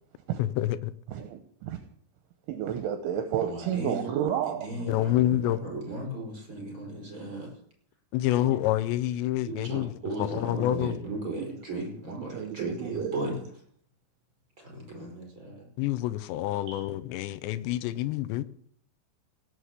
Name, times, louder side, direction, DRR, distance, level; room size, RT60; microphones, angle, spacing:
voice 1, 0.4-0.9 4.9-5.6 8.1-9.9 10.2-11.0 15.8-18.4, left 14 dB, 85° left, 13 dB, 2.5 m, -27 dB
voice 2, 1.1-1.8 2.5-4.7 11.4-11.5 12.3-13.2 16.7-16.9, right 9 dB, 75° right, 8 dB, 3.2 m, -31 dB
voice 3, 3.4-4.1 4.6-7.5 8.4-8.6 9.5-13.4 14.6-15.7, right 2 dB, 15° right, 0 dB, 5.1 m, -36 dB
18.0 x 7.6 x 8.2 m, 0.63 s
omnidirectional pair, 6.0 m